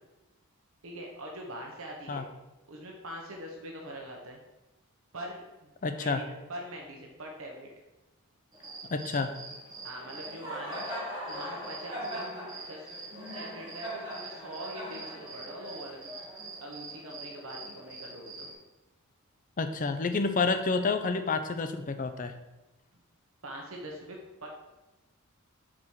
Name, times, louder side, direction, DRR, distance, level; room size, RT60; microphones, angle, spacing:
voice 1, 0.8-2.2 2.7-4.4 5.1-7.7 9.8-10.8 11.3-12.3 12.7-12.9 13.3-16.1 16.6-18.5 23.4-24.5, right 1 dB, 65° right, 0 dB, 1.2 m, -43 dB
voice 2, 5.8-6.2 8.9-9.3 19.6-22.3, left 4 dB, 35° left, 8 dB, 0.5 m, -29 dB
Cricket, 8.5-18.5, right 1 dB, 20° right, 2.2 m, -41 dB
5.0 x 4.7 x 5.7 m, 1.0 s
head